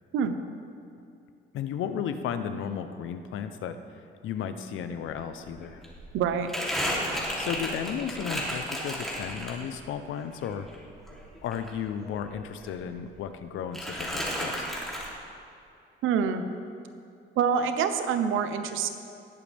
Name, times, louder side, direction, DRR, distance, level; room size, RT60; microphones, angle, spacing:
voice 1, 1.5-5.8 7.1-10.7 11.4-14.7, left 8 dB, 80° left, 9 dB, 0.8 m, -34 dB
Crumpling crinkling, 5.4-9.9 10.3-12.4 12.7-13.4 13.7-15.1, equal, ahead, 3.1 m, -33 dB
voice 2, 6.1-6.5 16.0-16.4 17.4-18.9, right 7 dB, 90° right, 9 dB, 0.8 m, -26 dB
19.0 x 8.4 x 3.5 m, 2.6 s
cardioid pair, 90°, 20 cm